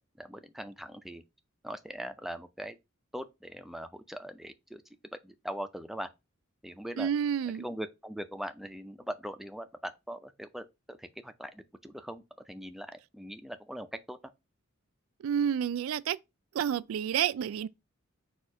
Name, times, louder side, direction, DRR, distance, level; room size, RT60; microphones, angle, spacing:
voice 1, 0.2-1.2 1.6-2.8 3.1-4.8 5.2-6.1 6.6-7.1 7.6-14.2, equal, ahead, 0.4 m, -41 dB
voice 2, 7.0-7.6 15.2-16.2 16.5-17.7, right 8 dB, 75° right, 0.3 m, -29 dB
4.3 x 2.4 x 4.8 m
head